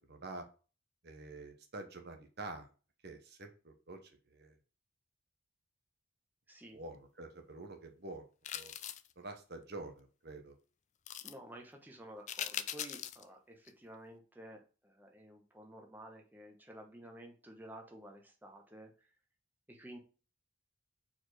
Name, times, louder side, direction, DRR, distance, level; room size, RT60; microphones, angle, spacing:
voice 1, 0.1-0.5 1.0-2.7 3.0-4.5 6.7-8.2 8.5-8.7 9.2-10.6, right 2 dB, 50° right, 6 dB, 1.0 m, -47 dB
voice 2, 6.5-6.8 11.2-18.9 19.7-20.0, right 1 dB, 10° right, 2 dB, 1.1 m, -52 dB
sound 1, 8.4-9.1 11.1-11.3 12.3-13.2 13.7-13.8, left 10 dB, 35° left, 0.3 m, -40 dB
4.7 x 4.3 x 4.8 m, 0.35 s
head